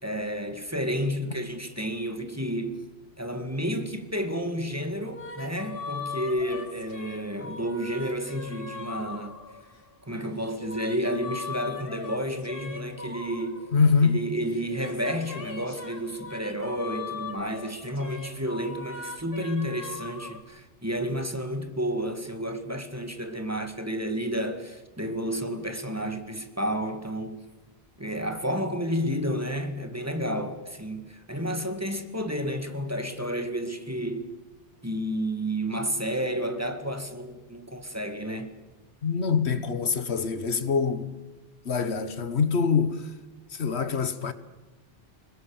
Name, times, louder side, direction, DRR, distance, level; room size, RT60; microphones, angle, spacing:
voice 1, 0.0-2.8 3.2-9.4 10.1-13.7 14.0-27.4 28.0-34.3 34.8-38.6, equal, 15° right, 2.0 m, -31 dB
sound 1, 5.0-9.9 10.4-14.1 14.5-20.4, left 4 dB, 60° left, 2.3 m, -40 dB
voice 2, 13.7-14.2 39.0-41.2 41.6-43.1 43.5-44.3, left 5 dB, 85° left, 1.5 m, -24 dB
25.5 x 22.0 x 7.2 m
omnidirectional pair, 1.1 m